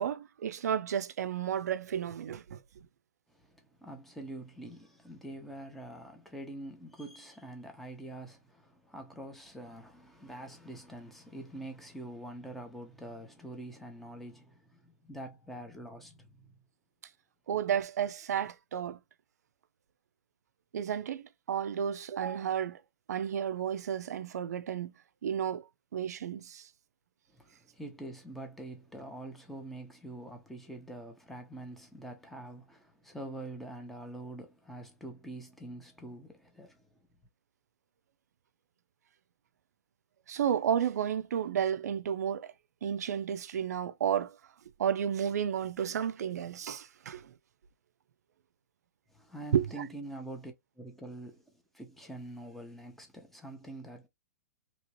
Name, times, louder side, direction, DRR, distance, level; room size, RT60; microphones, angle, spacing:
voice 1, 0.0-2.6 17.5-19.0 20.7-22.8 23.1-24.9 25.2-25.6 25.9-26.6 40.3-42.5 42.8-44.4 44.8-47.3 49.5-49.7, right 9 dB, 80° right, 0.4 m, -32 dB
voice 2, 3.8-16.5 27.3-36.9 49.1-51.4 51.7-54.1, right 1 dB, ahead, 0.8 m, -45 dB
2.9 x 2.9 x 2.9 m
hypercardioid pair, 140°, 9 cm